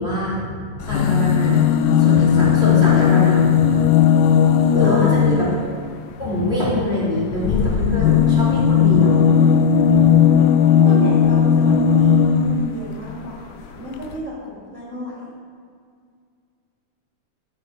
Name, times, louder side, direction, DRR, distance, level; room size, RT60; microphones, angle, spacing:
voice 1, 0.0-1.6 2.0-3.7 4.7-5.5 6.2-9.3, left 1 dB, 20° left, -8 dB, 2.6 m, -23 dB
sound 1, 0.8-5.7 7.3-12.8 13.7-13.8 14.0-14.1, left 7 dB, 80° left, 2.0 m, -16 dB
voice 2, 4.8-5.5 10.8-15.3, right 1 dB, 40° right, -7 dB, 2.3 m, -32 dB
12.0 x 6.7 x 5.1 m, 2.1 s
omnidirectional pair, 3.6 m